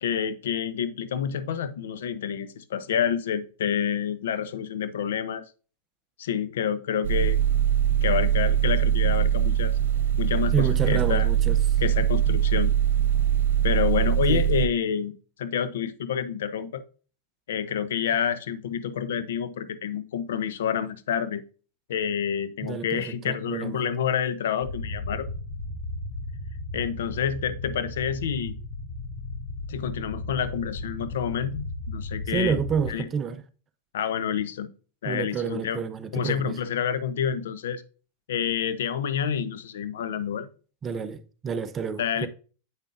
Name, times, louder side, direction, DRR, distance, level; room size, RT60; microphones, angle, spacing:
voice 1, 0.0-5.4 6.2-7.4 8.0-9.7 10.2-11.3 11.8-12.7 13.6-15.1 15.4-16.8 17.5-21.4 21.9-25.3 26.7-28.5 29.7-32.6 32.9-33.1 33.9-34.7 35.0-35.8 36.1-37.8 38.3-40.5 42.0-42.3, left 8 dB, 80° left, 0.6 m, -28 dB
sound 1, 7.0-14.7, right 10 dB, 80° right, 0.7 m, -22 dB
voice 2, 10.5-11.6 14.3-14.4 22.6-23.9 32.3-33.4 35.1-36.6 40.8-42.3, right 6 dB, 25° right, 0.6 m, -29 dB
sound 2, 24.6-32.9, left 2 dB, 60° left, 3.1 m, -35 dB
7.9 x 5.3 x 2.5 m
hypercardioid pair, 110°, 0 cm